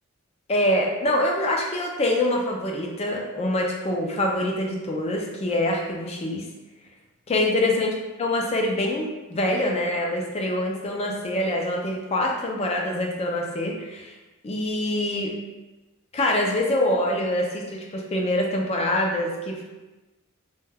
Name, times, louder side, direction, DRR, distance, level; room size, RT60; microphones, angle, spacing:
voice 1, 0.5-6.5 7.3-14.1 14.4-15.3 16.1-19.6, left 1 dB, 30° left, 0 dB, 0.4 m, -25 dB
2.2 x 2.2 x 3.3 m, 1.1 s
head